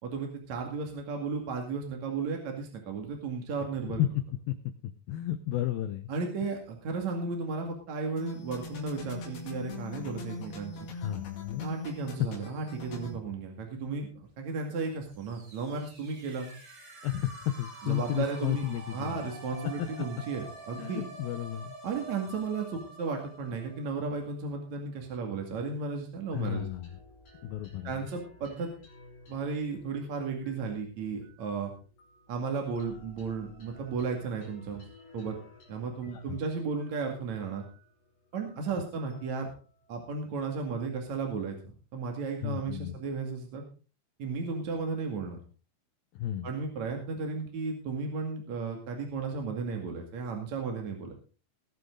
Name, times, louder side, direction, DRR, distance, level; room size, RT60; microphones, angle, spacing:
voice 1, 0.0-4.0 6.1-10.9 11.6-16.5 17.8-21.0 21.8-26.7 27.8-28.7 29.3-31.7 32.3-34.9 35.1-35.3 35.7-37.7 38.3-39.5 39.9-41.6 41.9-43.6 44.2-45.4 46.4-51.1, right 4 dB, 45° right, 2 dB, 3.0 m, -34 dB
voice 2, 4.8-6.1 10.9-11.7 17.0-19.3 19.8-19.9 20.8-21.7 26.3-26.9 27.4-28.1 36.0-36.4 42.4-43.0 46.1-46.5, left 12 dB, 85° left, 10 dB, 2.0 m, -33 dB
sound 1, 8.2-13.2, left 3 dB, 65° left, 4.4 m, -41 dB
sound 2, 15.0-24.7, right 2 dB, 80° right, 8.5 m, -48 dB
sound 3, 26.4-41.1, left 2 dB, 45° left, 6.3 m, -57 dB
20.0 x 9.5 x 3.9 m, 0.36 s
omnidirectional pair, 5.3 m